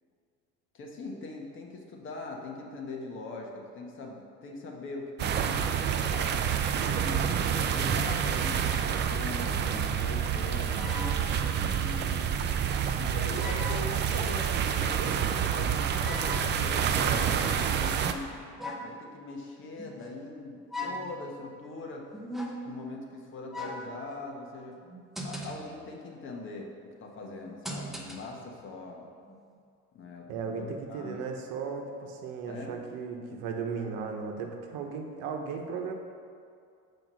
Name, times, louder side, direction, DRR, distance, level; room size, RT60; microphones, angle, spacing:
voice 1, 0.7-5.6 6.0-6.5 6.9-11.1 11.5-12.5 12.9-22.1 22.6-24.8 25.2-29.1 29.9-31.3 32.4-32.8, left 3 dB, 40° left, 0 dB, 1.3 m, -42 dB
sound 1, 5.2-18.1, right 8 dB, 35° right, 0.4 m, -28 dB
sound 2, 10.7-11.5 12.6-12.7 13.4-14.0 14.9-15.4 16.0-16.5 18.6-19.0 19.8-20.2 20.7-21.2 22.1-22.8 23.5-23.9 24.8-25.8 27.4-28.4 29.3-29.4, equal, ahead, 0.8 m, -39 dB
voice 2, 30.3-35.9, right 5 dB, 75° right, 3 dB, 1.1 m, -36 dB
7.6 x 5.0 x 6.2 m, 2.3 s
cardioid pair, 140°, 33 cm